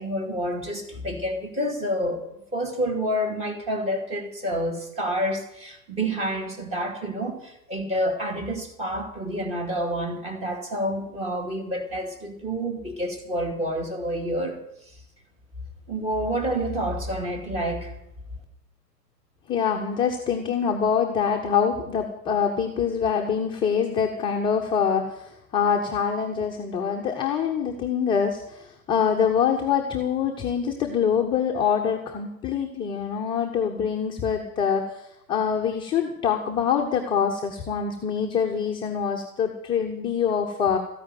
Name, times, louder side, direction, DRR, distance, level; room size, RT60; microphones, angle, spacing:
voice 1, 0.0-14.6 14.9-15.0 15.9-17.9, equal, 15° right, 4 dB, 2.5 m, -28 dB
voice 2, 19.5-40.8, left 7 dB, 10° left, 2 dB, 0.9 m, -25 dB
14.0 x 9.8 x 9.1 m, 0.81 s
figure-of-eight pair, 115°, 49 cm